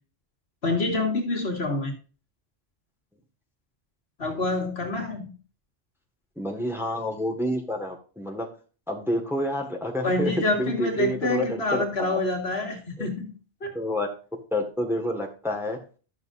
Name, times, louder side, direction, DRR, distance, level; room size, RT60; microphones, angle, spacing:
voice 1, 0.6-1.9 4.2-5.3 10.0-13.3 13.6-13.7, left 2 dB, 65° left, 1 dB, 2.0 m, -27 dB
voice 2, 6.4-8.5 8.9-10.3 10.6-12.2 13.0-13.1 13.7-14.1 14.5-15.8, left 1 dB, ahead, 1 dB, 1.5 m, -29 dB
12.0 x 6.6 x 2.5 m, 0.36 s
omnidirectional pair, 1.1 m